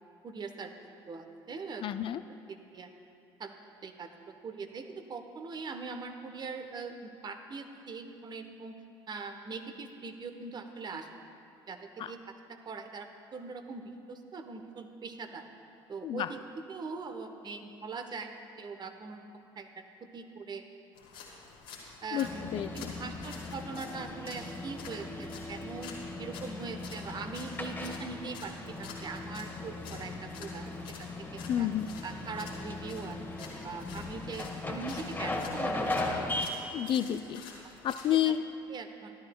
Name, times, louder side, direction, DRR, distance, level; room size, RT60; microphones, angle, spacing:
voice 1, 0.2-0.7 1.1-1.9 2.5-2.9 3.4-3.6 3.8-8.7 9.1-11.1 11.7-15.4 15.9-18.3 18.6-19.8 20.1-20.6 22.0-22.5 22.7-25.9 26.2-30.7 31.0-31.7 32.0-36.2 37.6-37.7 38.2-38.3 38.7-39.1, right 4 dB, 35° right, 7 dB, 0.9 m, -42 dB
voice 2, 1.8-2.2 12.0-12.1 16.0-16.3 22.1-22.3 22.5-22.9 31.5-31.9 36.7-37.4 37.8-38.4, left 11 dB, 45° left, 12 dB, 0.3 m, -30 dB
sound 1, 20.9-38.2, left 4 dB, 70° left, 1.8 m, -50 dB
sound 2, 22.2-36.5, left 2 dB, 15° left, 1.4 m, -38 dB
15.5 x 12.5 x 2.3 m, 2.6 s
figure-of-eight pair, 55°, 13 cm